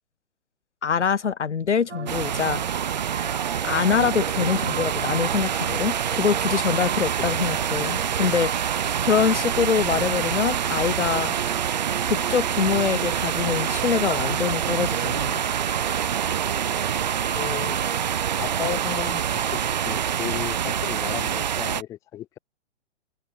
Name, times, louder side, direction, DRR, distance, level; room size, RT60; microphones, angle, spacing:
voice 1, 0.8-2.6 3.6-8.7 9.0-11.3 12.1-15.4, left 6 dB, 80° left, 7.1 m, -24 dB
sound 1, 1.9-20.4, right 6 dB, 80° right, 4.9 m, -37 dB
sound 2, 2.1-21.8, right 9 dB, 40° right, 0.8 m, -26 dB
voice 2, 17.3-17.8 18.4-22.4, left 13 dB, 10° left, 1.5 m, -34 dB
hypercardioid pair, 175°, 35 cm